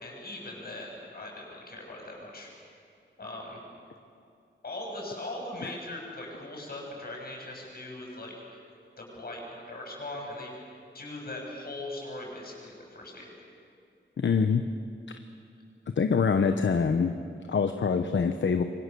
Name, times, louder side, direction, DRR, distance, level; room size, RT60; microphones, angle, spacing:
voice 1, 0.0-2.5 3.2-3.6 4.6-8.6 9.0-10.5 10.9-13.3, left 1 dB, 50° left, -1 dB, 7.5 m, -40 dB
voice 2, 14.2-14.6 16.0-17.2 17.5-18.6, left 5 dB, 70° left, 7 dB, 1.0 m, -24 dB
27.5 x 24.0 x 6.9 m, 2.5 s
wide cardioid pair, 135°, 20 cm